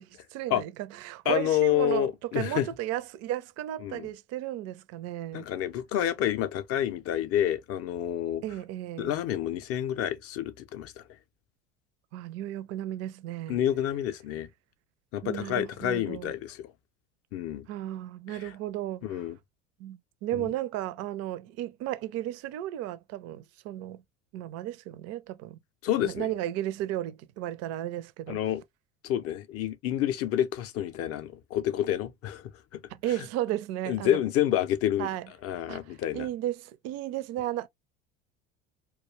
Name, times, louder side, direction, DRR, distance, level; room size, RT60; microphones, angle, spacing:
voice 1, 0.0-5.5 8.4-9.1 12.1-13.6 15.2-16.3 17.7-19.2 19.8-24.0 24.3-25.6 26.0-28.4 32.9-34.2 35.0-35.3 35.7-37.7, right 13 dB, 45° right, 0.4 m, -34 dB
voice 2, 1.3-2.7 3.8-4.1 5.3-8.4 9.0-10.9 13.5-14.5 15.1-16.7 17.3-17.7 18.4-18.5 19.0-19.4 20.3-20.5 25.8-26.3 28.3-28.6 29.0-32.5 33.9-35.1 35.4-36.3, left 11 dB, 40° left, 0.5 m, -28 dB
2.3 x 2.1 x 3.1 m
hypercardioid pair, 70°, 37 cm